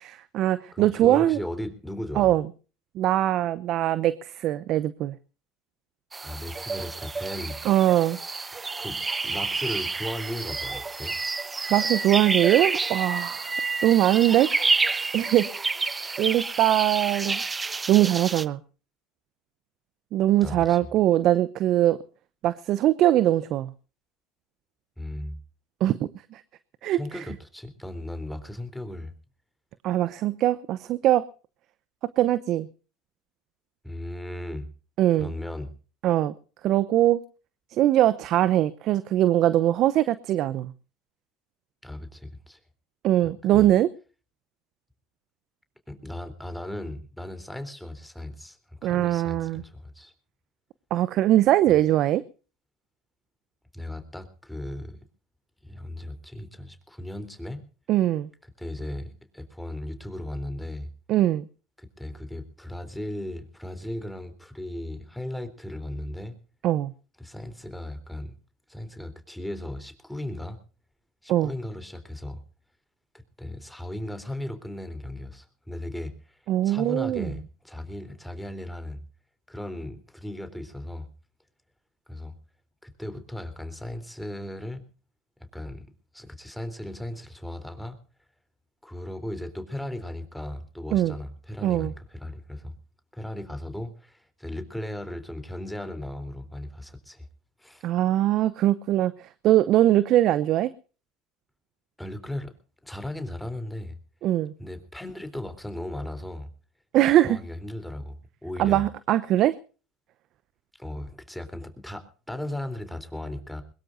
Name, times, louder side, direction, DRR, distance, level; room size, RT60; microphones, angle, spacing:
voice 1, 0.0-1.4 2.2-2.4 2.9-5.2 7.6-8.2 11.7-13.5 13.8-14.5 15.1-15.7 16.2-17.4 17.9-18.6 20.1-22.0 22.4-23.7 25.8-26.4 26.8-27.2 29.8-31.2 32.2-32.7 35.0-35.3 36.0-36.3 36.6-37.2 37.7-40.7 43.0-43.9 48.8-49.6 50.9-52.2 57.9-58.3 61.1-61.4 66.6-66.9 71.3-71.5 76.5-77.3 90.9-91.1 91.6-91.9 97.8-100.7 104.2-104.5 106.9-107.4 108.6-109.6, right 13 dB, 55° right, 16 dB, 0.8 m, -22 dB
voice 2, 0.7-2.3 6.2-7.6 8.8-9.0 9.2-11.2 20.4-20.8 25.0-25.4 26.9-29.1 33.8-34.7 35.1-35.7 41.8-42.6 43.5-43.7 45.9-50.1 53.7-55.0 55.6-57.6 58.6-60.9 61.8-66.4 67.2-68.4 68.7-70.6 71.2-72.4 73.1-79.0 79.5-81.1 82.1-82.3 82.8-84.8 85.4-85.9 86.1-88.0 88.8-92.7 93.1-97.3 97.6-97.9 102.0-102.5 102.8-104.0 104.6-106.5 107.2-108.2 108.4-108.8 110.8-113.6, left 1 dB, 5° left, 9 dB, 3.5 m, -36 dB
sound 1, 6.1-18.4, right 4 dB, 20° right, 1.0 m, -29 dB
22.0 x 21.0 x 2.6 m, 0.37 s
hypercardioid pair, 75°, 0 cm